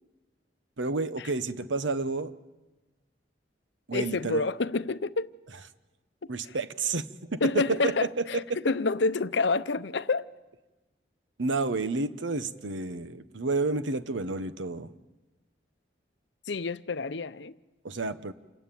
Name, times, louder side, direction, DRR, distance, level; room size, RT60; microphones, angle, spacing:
voice 1, 0.8-2.3 3.9-4.4 6.3-8.6 11.4-14.9 17.8-18.3, right 3 dB, 85° right, 1.0 m, -30 dB
voice 2, 3.9-5.3 7.4-10.3 16.5-17.6, left 3 dB, 70° left, 0.7 m, -28 dB
28.5 x 15.5 x 9.2 m
head